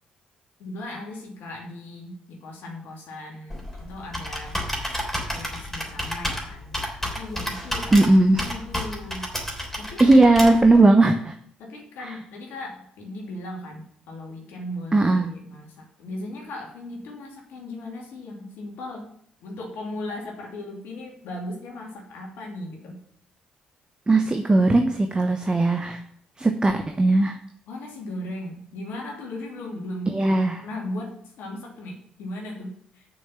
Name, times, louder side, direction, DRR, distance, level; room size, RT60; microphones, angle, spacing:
voice 1, 0.6-4.6 5.3-9.3 9.8-10.0 11.6-19.1 19.4-23.0 27.7-30.2 30.6-33.1, left 1 dB, 60° left, -1 dB, 2.8 m, -37 dB
Computer keyboard, 3.5-10.8, equal, 5° left, 3.5 m, -31 dB
voice 2, 7.9-8.4 10.0-11.3 14.9-15.3 24.1-26.0 26.4-27.4 30.1-30.6, right 2 dB, 20° right, 5 dB, 1.0 m, -18 dB
6.5 x 6.4 x 7.3 m, 0.65 s
figure-of-eight pair, 45°, 4 cm